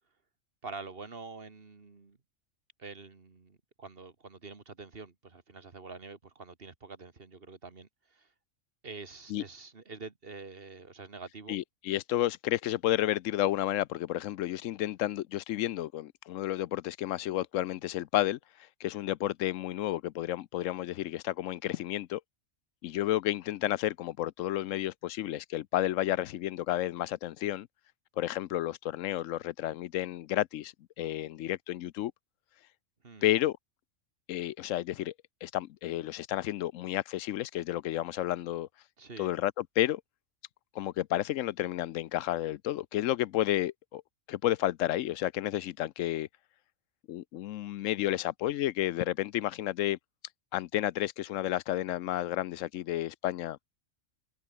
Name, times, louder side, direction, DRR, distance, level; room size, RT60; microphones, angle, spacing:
voice 1, 0.6-2.2 2.8-8.3 8.8-11.6 33.0-33.3 39.0-39.3, right 4 dB, 50° right, 2.0 m, -46 dB
voice 2, 11.5-18.4 18.8-22.2 22.8-27.7 28.2-32.1 33.2-33.6 34.3-35.1 35.4-38.7 39.2-40.0 40.7-44.0 44.3-46.3 47.1-50.0 50.5-53.6, left 13 dB, 85° left, 1.0 m, -31 dB
omnidirectional pair, 1.3 m